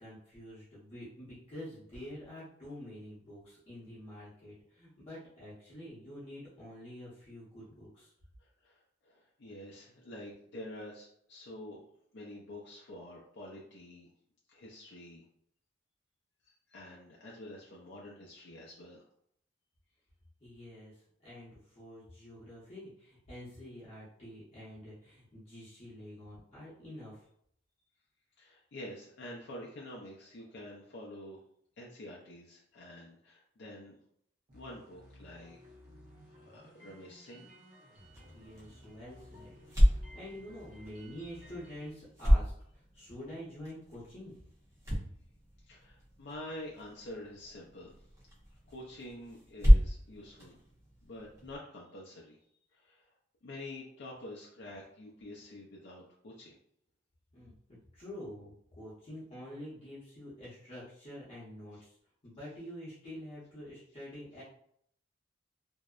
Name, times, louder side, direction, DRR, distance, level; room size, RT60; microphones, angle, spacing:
voice 1, 0.0-8.1 20.4-27.3 38.3-44.3 57.3-62.0 62.2-64.4, equal, 35° left, -10 dB, 0.8 m, -47 dB
voice 2, 8.4-11.8 12.1-14.1 14.5-15.2 16.4-19.1 28.4-31.4 31.8-33.9 34.5-35.6 36.4-37.5 45.7-47.9 48.7-50.6 51.0-52.4 52.7-53.1 53.4-56.6, left 1 dB, 65° left, -4 dB, 0.4 m, -47 dB
sound 1, 34.5-41.9, equal, 45° right, 0.9 m, -56 dB
sound 2, 38.0-51.6, equal, 15° right, 0.7 m, -31 dB
2.6 x 2.0 x 2.3 m, 0.68 s
head